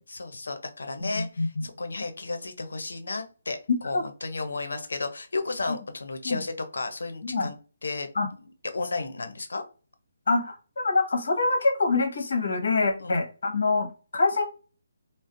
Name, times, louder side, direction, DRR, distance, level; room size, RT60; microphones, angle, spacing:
voice 1, 0.1-3.6 3.8-7.6 7.8-8.1 8.7-9.6 13.0-13.1, left 3 dB, 85° left, 7 dB, 0.6 m, -33 dB
voice 2, 1.0-1.7 3.9-4.0 6.2-6.4 7.2-7.5 8.1-8.3 10.3-13.9 14.1-14.5, left 3 dB, 60° left, 3 dB, 1.0 m, -25 dB
2.5 x 2.0 x 2.5 m, 0.35 s
hypercardioid pair, 170°, 0 cm